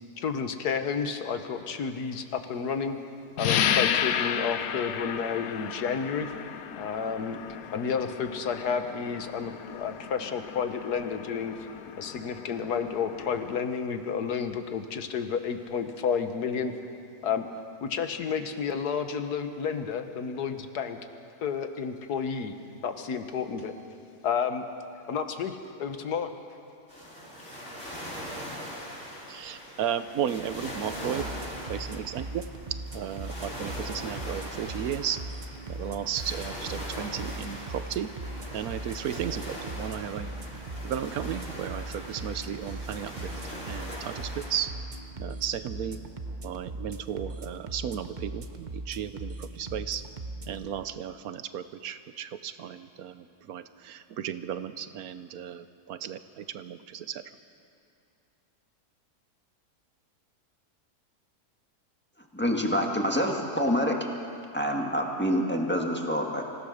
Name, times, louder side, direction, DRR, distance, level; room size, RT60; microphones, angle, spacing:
voice 1, 0.2-3.0 3.4-6.3 6.8-7.4 7.7-11.6 12.0-16.7 17.2-17.5 17.8-21.0 21.4-22.5 22.8-23.7 24.2-24.7 25.1-26.3, left 6 dB, 85° left, 8 dB, 1.7 m, -31 dB
sound 1, 3.4-13.7, left 9 dB, 70° left, 1.2 m, -33 dB
sound 2, 26.9-44.7, equal, 50° left, 6.7 m, -41 dB
voice 2, 29.3-31.3 31.7-32.4 32.9-35.2 35.7-38.1 38.5-44.8 45.2-46.0 46.4-50.1 50.4-57.2, right 9 dB, 75° right, 12 dB, 1.2 m, -34 dB
sound 3, 30.9-50.7, right 2 dB, 35° right, 0.9 m, -39 dB
voice 3, 62.3-64.0 64.5-66.5, equal, 5° left, 1 dB, 1.7 m, -27 dB
25.5 x 16.0 x 6.5 m, 2.5 s
omnidirectional pair, 1.6 m